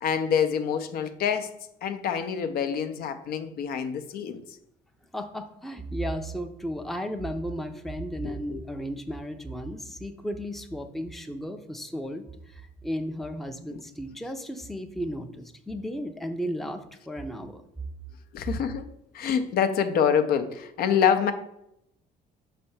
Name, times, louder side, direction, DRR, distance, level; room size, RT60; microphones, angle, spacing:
voice 1, 0.0-1.5 1.8-4.4 8.2-8.6 18.3-18.9 19.1-21.3, left 7 dB, 65° left, 9 dB, 0.6 m, -26 dB
voice 2, 5.1-17.6, equal, ahead, 6 dB, 0.5 m, -34 dB
5.3 x 3.3 x 5.5 m, 0.82 s
cardioid pair, 110°, 17 cm